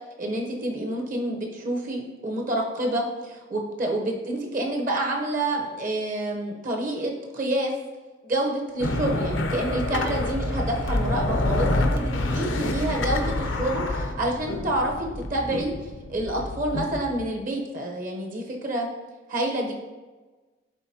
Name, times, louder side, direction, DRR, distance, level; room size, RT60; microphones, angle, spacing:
voice 1, 0.2-7.7 8.2-15.7 16.1-18.9 19.3-19.7, right 1 dB, 45° right, 1 dB, 0.9 m, -28 dB
sound 1, 8.8-17.2, left 1 dB, 80° left, 0.7 m, -27 dB
11.0 x 3.9 x 2.8 m, 1.3 s
head